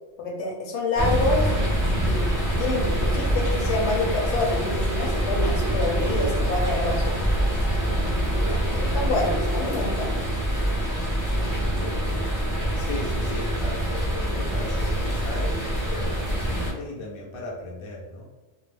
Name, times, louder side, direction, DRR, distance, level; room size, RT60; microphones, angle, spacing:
voice 1, 0.2-1.5 2.0-7.1 8.0-8.3 8.7-10.1, left 2 dB, 70° left, 0 dB, 0.9 m, -27 dB
sound 1, 1.0-16.7, equal, 25° right, 0.4 m, -25 dB
voice 2, 8.4-8.8 9.6-9.8 11.5-12.3 12.7-18.2, left 2 dB, 45° left, -3 dB, 0.4 m, -36 dB
2.3 x 2.0 x 3.2 m, 1.1 s
omnidirectional pair, 1.3 m